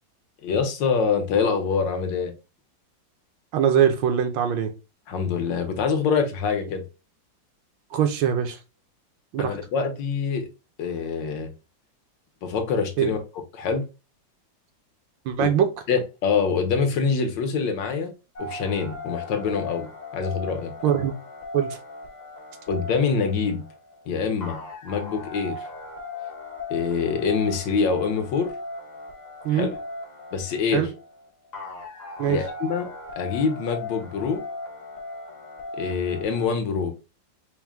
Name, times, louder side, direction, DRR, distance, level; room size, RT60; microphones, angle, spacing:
voice 1, 0.4-2.3 5.1-6.8 9.4-10.5 10.8-11.5 12.4-13.2 13.5-13.9 15.4-15.5 15.9-18.1 18.4-20.7 22.7-23.6 24.1-25.7 26.7-28.5 29.5-29.7 30.3-30.9 32.3-32.9 33.2-34.4 35.7-36.9, left 5 dB, 75° left, 1.4 m, -25 dB
voice 2, 3.5-4.7 7.9-8.6 9.3-9.5 13.0-13.1 15.2-15.7 20.8-21.1 21.5-21.8 29.4-29.7 30.7-30.9 32.2-32.4, right 9 dB, 75° right, 1.4 m, -22 dB
sound 1, 18.4-36.5, left 3 dB, 40° left, 0.6 m, -38 dB
4.5 x 2.1 x 3.5 m
omnidirectional pair, 2.1 m